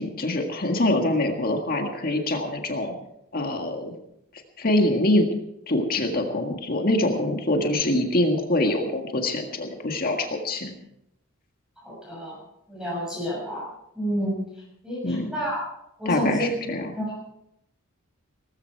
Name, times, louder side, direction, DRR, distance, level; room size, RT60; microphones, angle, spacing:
voice 1, 0.0-2.9 3.3-3.9 4.6-5.3 5.7-10.7 15.0-15.3 16.1-16.9, left 1 dB, 45° left, 4 dB, 1.8 m, -24 dB
voice 2, 11.8-12.4 12.7-13.6 13.9-14.3 14.8-15.6 16.0-16.7 17.0-17.1, equal, 5° right, -5 dB, 6.7 m, -29 dB
18.5 x 14.5 x 4.6 m, 0.79 s
head